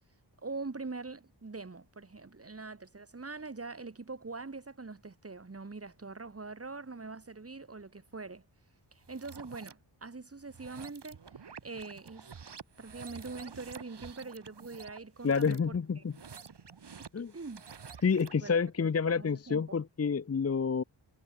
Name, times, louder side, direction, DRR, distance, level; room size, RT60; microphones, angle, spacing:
voice 1, 0.4-8.4 8.9-11.2 11.6-12.3 12.8-16.0 17.0-17.1 17.3-18.1 18.3-19.8, right 3 dB, 30° right, 4.8 m, -43 dB
sound 1, 9.0-9.7 10.4-18.5, right 6 dB, 65° right, 6.2 m, -50 dB
voice 2, 15.2-16.1 17.1-17.3 18.0-20.8, left 5 dB, 35° left, 0.8 m, -29 dB
wide cardioid pair, 130°, 44 cm